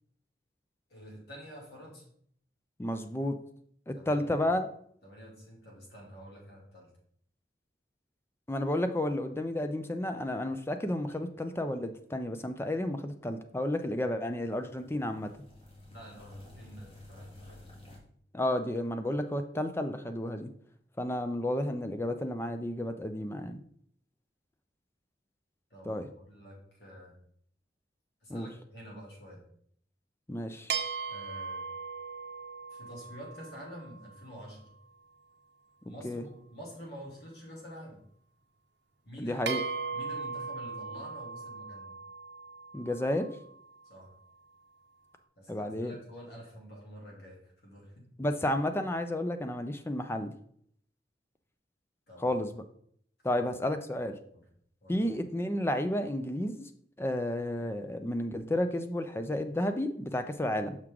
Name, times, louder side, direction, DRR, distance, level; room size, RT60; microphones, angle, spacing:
voice 1, 0.9-2.0 3.9-4.4 5.0-6.9 15.9-17.6 25.7-27.2 28.2-29.4 31.1-31.7 32.7-34.7 35.9-38.0 39.0-39.4 39.9-42.0 43.8-44.1 45.4-48.0 52.1-52.2 53.3-53.4 54.3-54.4 54.8-55.0, equal, 65° left, -2 dB, 2.7 m, -48 dB
voice 2, 2.8-3.4 3.9-4.7 8.5-15.3 18.3-20.5 21.0-23.6 25.9-26.1 28.3-28.5 30.3-30.7 36.0-36.2 39.2-39.6 42.7-43.3 45.5-45.9 48.2-50.3 52.2-52.6 53.2-54.2 54.9-56.7 57.0-60.8, left 1 dB, 15° left, 8 dB, 0.4 m, -32 dB
sound 1, 14.1-18.0, left 1 dB, 35° left, 1.8 m, -52 dB
sound 2, 30.7-34.4 39.5-43.8, right 5 dB, 75° right, 0.7 m, -38 dB
6.3 x 5.9 x 3.7 m, 0.64 s
head